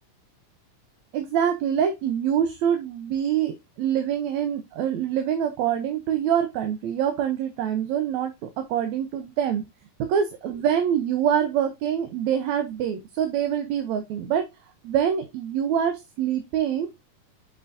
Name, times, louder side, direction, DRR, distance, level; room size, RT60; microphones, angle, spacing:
voice 1, 1.1-9.6 10.0-14.5 14.8-16.9, right 9 dB, 75° right, 7 dB, 2.0 m, -25 dB
6.4 x 6.0 x 2.6 m, 0.22 s
omnidirectional pair, 3.4 m